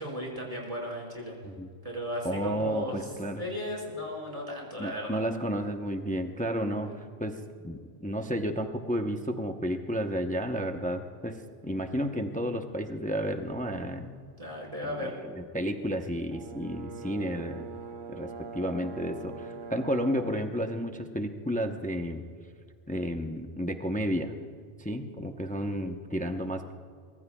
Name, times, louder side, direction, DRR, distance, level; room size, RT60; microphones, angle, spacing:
voice 1, 0.0-1.3 1.8-3.0 3.4-5.2 6.8-6.9 14.4-15.2, left 1 dB, 30° right, -3 dB, 4.9 m, -35 dB
voice 2, 2.2-3.4 4.8-6.9 7.2-11.4 11.6-14.2 14.8-17.7 18.1-22.2 22.9-24.4 24.8-26.7, equal, 10° left, 5 dB, 0.6 m, -32 dB
Brass instrument, 16.3-20.5, right 5 dB, 50° right, 1.0 m, -42 dB
24.0 x 21.0 x 2.3 m, 2.2 s
omnidirectional pair, 1.2 m